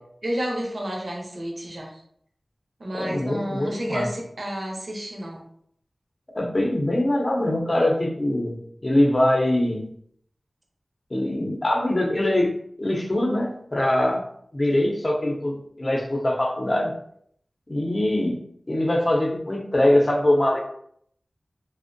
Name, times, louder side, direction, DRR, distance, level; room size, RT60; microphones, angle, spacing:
voice 1, 0.2-2.0 2.8-5.4, equal, 65° right, 0 dB, 0.6 m, -31 dB
voice 2, 2.9-4.1 6.3-8.6 8.8-9.8 11.1-12.5 12.8-14.3 14.5-16.9 17.7-18.4 18.7-20.6, left 1 dB, 40° left, 0 dB, 0.6 m, -22 dB
2.5 x 2.1 x 2.5 m, 0.67 s
wide cardioid pair, 50°, 0 cm